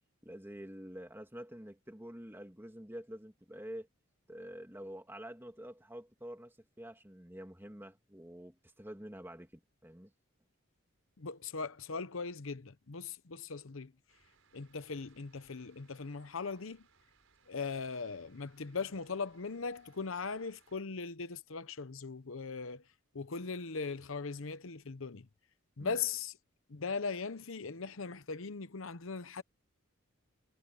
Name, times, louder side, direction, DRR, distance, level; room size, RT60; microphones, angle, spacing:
voice 1, 0.2-3.9 4.3-10.1 25.8-26.0, equal, 10° right, 2.4 m, -47 dB
voice 2, 11.2-13.9 14.5-16.9 17.5-22.8 23.1-25.3 25.8-26.4 26.7-29.4, left 4 dB, 70° left, 0.9 m, -39 dB
sound 1, 14.1-20.8, right 5 dB, 70° right, 5.8 m, -69 dB
head